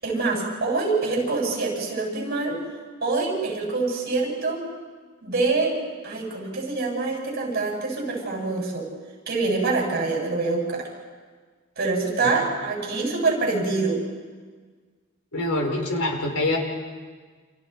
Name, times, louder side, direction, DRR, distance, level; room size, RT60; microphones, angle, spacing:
voice 1, 0.0-2.6 3.0-4.6 5.2-5.8 6.0-8.9 9.3-10.9 11.8-14.0, right 3 dB, 45° right, -1 dB, 7.7 m, -25 dB
voice 2, 15.3-16.6, left 2 dB, 75° left, 1 dB, 4.8 m, -25 dB
30.0 x 28.5 x 4.7 m, 1.5 s
head